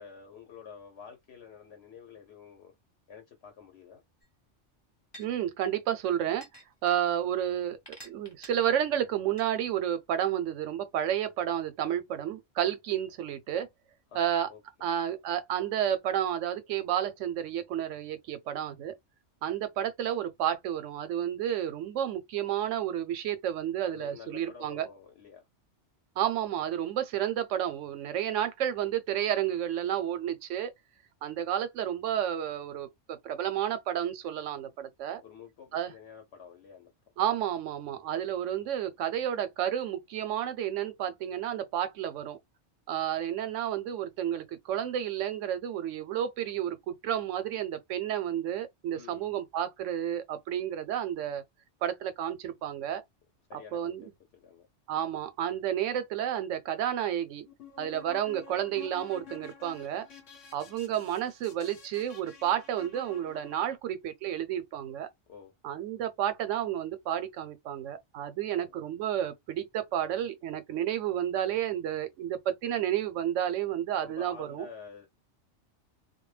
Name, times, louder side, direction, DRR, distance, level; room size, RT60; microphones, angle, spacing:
voice 1, 0.0-2.8 3.1-4.0 14.1-14.6 23.8-25.5 35.2-36.9 48.9-49.4 53.5-54.7 65.3-65.5 68.5-68.8 74.0-75.1, left 6 dB, 65° left, 0.9 m, -49 dB
sound 1, 4.2-4.3 5.1-5.3 6.4-7.0 7.9-8.5 9.4-9.5, equal, 20° left, 0.9 m, -48 dB
voice 2, 5.2-6.5 6.8-7.8 8.0-13.7 14.1-14.5 14.8-18.9 19.4-24.9 26.2-30.7 31.2-35.2 35.7-35.9 37.2-42.4 42.9-51.4 51.8-53.0 53.5-54.0 54.9-57.5 57.8-60.1 60.5-65.1 65.6-74.7, right 10 dB, 90° right, 0.9 m, -31 dB
sound 2, 57.4-63.8, left 7 dB, 90° left, 1.1 m, -50 dB
2.2 x 2.2 x 3.1 m
omnidirectional pair, 1.2 m